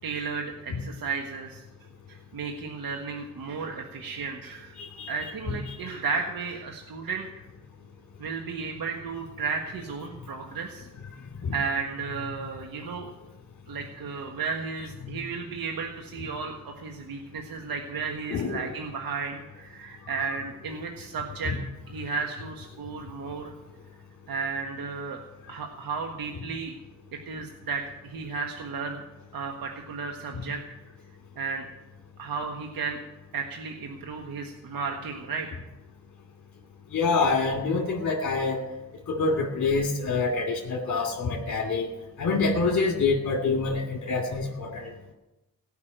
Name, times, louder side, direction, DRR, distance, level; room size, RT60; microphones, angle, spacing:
voice 1, 0.0-1.6 2.1-4.7 5.1-7.3 8.2-10.9 11.5-13.1 13.7-21.5 21.9-23.5 24.3-25.2 25.5-26.7 27.2-29.0 29.3-30.6 31.4-31.7 32.2-33.0 33.3-35.5, right 5 dB, 70° right, 2 dB, 1.6 m, -33 dB
voice 2, 4.8-5.1 5.5-5.6 11.4-11.5 15.0-15.1 18.3-18.7 21.5-21.6 30.3-30.4 36.9-38.6 39.1-41.9 42.2-44.9, left 4 dB, 55° left, -1 dB, 2.5 m, -26 dB
17.5 x 5.9 x 9.3 m, 0.99 s
cardioid pair, 80°, 36 cm